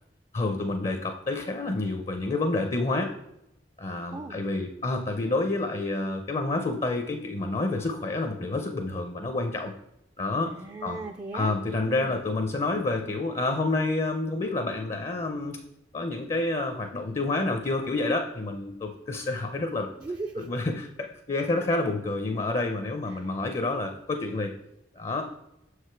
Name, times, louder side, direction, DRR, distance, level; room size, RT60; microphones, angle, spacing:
voice 1, 0.3-3.1 3.8-9.7 10.2-10.5 10.8-11.0 11.3-15.6 15.9-19.9 20.4-24.5 25.0-25.3, left 2 dB, 35° left, 5 dB, 0.5 m, -28 dB
voice 2, 10.4-11.5 11.8-12.2 20.0-20.6 23.1-23.3, right 3 dB, 25° right, 4 dB, 0.3 m, -38 dB
6.2 x 4.8 x 4.5 m, 0.84 s
head